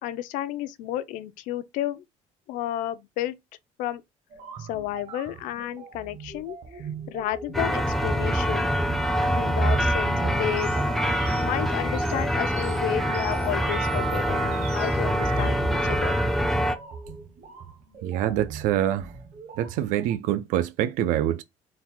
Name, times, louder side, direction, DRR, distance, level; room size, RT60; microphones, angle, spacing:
voice 1, 0.0-2.0 2.5-3.4 3.8-4.0 4.6-8.7 9.4-10.7 11.4-16.2, left 13 dB, 75° left, 0.5 m, -32 dB
sound 1, 4.3-20.1, right 5 dB, 50° right, 1.1 m, -41 dB
sound 2, 7.5-16.7, equal, ahead, 0.4 m, -25 dB
voice 2, 18.0-19.1 19.6-21.4, right 12 dB, 75° right, 0.5 m, -25 dB
3.9 x 2.2 x 4.2 m
cardioid pair, 155°, 13 cm